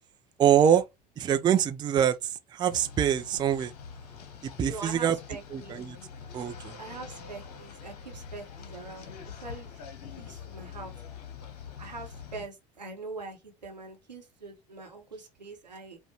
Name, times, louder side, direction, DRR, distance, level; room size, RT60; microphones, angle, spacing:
voice 1, 0.4-0.8 1.2-2.2 2.5-3.7 4.6-5.2 5.5-6.0 6.3-6.7, right 9 dB, 20° right, 0.4 m, -24 dB
sound 1, 2.7-12.5, left 6 dB, 65° left, 0.8 m, -45 dB
voice 2, 4.6-5.8 6.8-9.8 10.2-10.9 11.8-16.0, right 3 dB, 85° right, 0.9 m, -43 dB
4.6 x 2.1 x 2.9 m
figure-of-eight pair, 70°, 21 cm